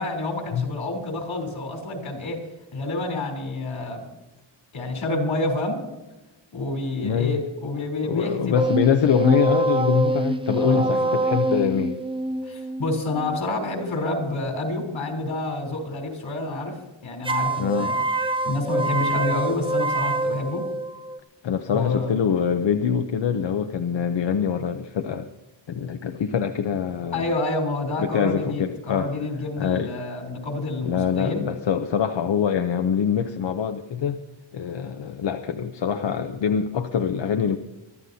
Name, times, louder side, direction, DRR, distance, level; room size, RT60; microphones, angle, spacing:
voice 1, 0.0-2.4 2.7-4.1 4.7-5.8 6.5-8.6 10.5-11.1 12.4-18.0 18.4-20.7 21.7-22.2 27.1-31.4, left 2 dB, 85° left, 3 dB, 3.7 m, -28 dB
voice 2, 7.0-7.4 8.0-12.0 17.6-17.9 21.4-25.3 25.7-27.3 28.0-29.1 29.6-29.9 30.8-34.2 34.5-37.6, left 7 dB, 70° left, 6 dB, 0.8 m, -24 dB
sound 1, 8.5-13.9 17.2-21.2, right 2 dB, 10° right, 0.4 m, -25 dB
23.5 x 13.0 x 2.7 m, 1.1 s
wide cardioid pair, 175°, 46 cm